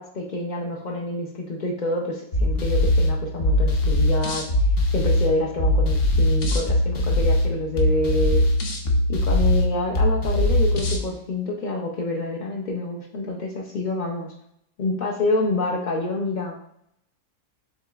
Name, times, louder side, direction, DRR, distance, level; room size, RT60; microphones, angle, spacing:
voice 1, 0.0-4.5 4.9-8.4 9.1-14.3 14.8-16.5, left 2 dB, 80° left, -2 dB, 0.4 m, -27 dB
sound 1, 2.3-11.0, left 1 dB, 55° left, 0.7 m, -21 dB
7.0 x 2.9 x 2.4 m, 0.73 s
omnidirectional pair, 1.7 m